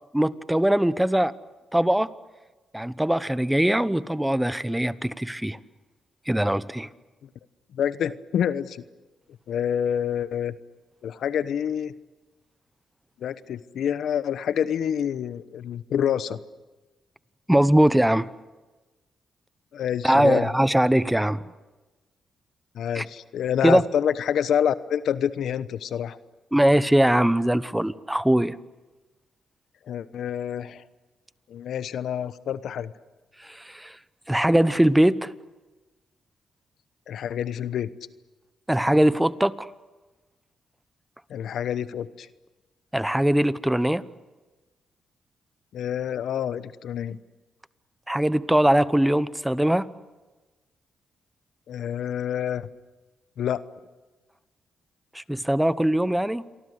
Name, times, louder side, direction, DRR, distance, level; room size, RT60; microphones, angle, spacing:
voice 1, 0.1-1.3 1.7-2.1 2.7-5.6 6.3-6.9 17.5-18.3 20.0-21.4 22.9-23.1 23.6-23.8 26.5-28.6 33.7-33.9 34.3-35.3 38.7-39.7 42.9-44.0 48.1-49.9 55.1-56.4, right 1 dB, 5° right, 16 dB, 1.0 m, -21 dB
voice 2, 7.7-8.8 9.5-10.6 11.0-11.9 13.2-16.4 19.7-20.5 22.7-26.2 29.9-30.8 31.5-32.9 37.1-37.9 41.3-42.3 45.7-47.2 51.7-52.7 53.4-53.6, left 9 dB, 75° left, 15 dB, 1.0 m, -27 dB
28.0 x 23.5 x 8.2 m, 1.2 s
cardioid pair, 70°, 0 cm